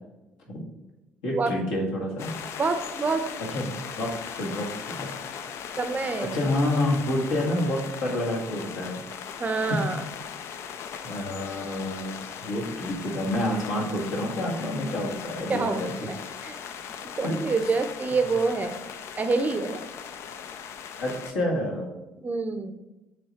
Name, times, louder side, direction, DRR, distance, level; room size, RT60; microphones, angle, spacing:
voice 1, 1.2-2.4 3.5-5.1 6.3-9.0 9.7-9.8 11.0-15.9 17.2-17.8 21.0-21.9, left 1 dB, 65° left, -3 dB, 1.8 m, -28 dB
sound 1, 2.2-21.3, left 7 dB, 50° left, 0.4 m, -39 dB
voice 2, 2.6-3.3 5.8-6.5 9.4-10.0 15.5-15.8 16.4-16.6 17.2-18.8 19.2-19.8 22.2-22.7, right 4 dB, 30° right, 8 dB, 0.6 m, -26 dB
7.6 x 3.5 x 4.1 m, 1.0 s
figure-of-eight pair, 50°, 6 cm